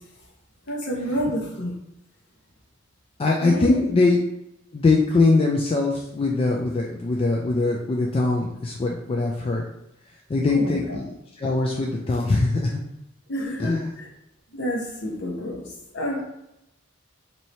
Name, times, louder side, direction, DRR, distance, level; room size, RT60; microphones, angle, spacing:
voice 1, 0.7-1.7 3.4-3.8 10.5-11.0 13.3-14.1 14.5-16.2, equal, 60° left, -1 dB, 1.0 m, -29 dB
voice 2, 3.2-4.2 4.7-9.6 10.3-12.8 13.6-13.8, left 3 dB, 30° left, -1 dB, 0.3 m, -22 dB
3.0 x 2.7 x 4.2 m, 0.85 s
head